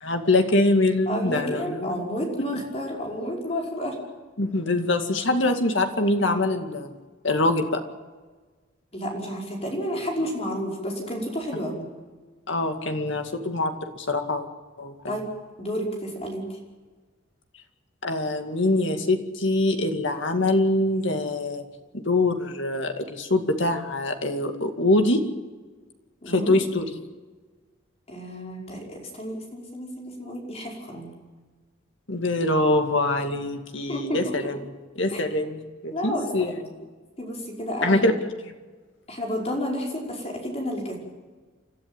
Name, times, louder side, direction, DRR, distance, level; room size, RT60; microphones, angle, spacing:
voice 1, 0.0-2.0 2.5-2.6 4.4-6.9 7.2-7.8 12.5-14.5 14.8-15.2 18.0-21.6 21.9-25.2 26.3-26.9 32.1-34.7 35.0-36.6 37.8-38.3, left 2 dB, 60° left, 5 dB, 2.2 m, -24 dB
voice 2, 1.1-3.9 8.9-11.9 15.1-15.3 15.6-16.5 26.2-26.5 28.1-31.1 33.9-34.5 35.1-35.2 35.9-36.3 37.2-38.0 39.1-41.0, equal, 30° left, -1 dB, 5.3 m, -31 dB
30.0 x 13.0 x 8.9 m, 1.4 s
head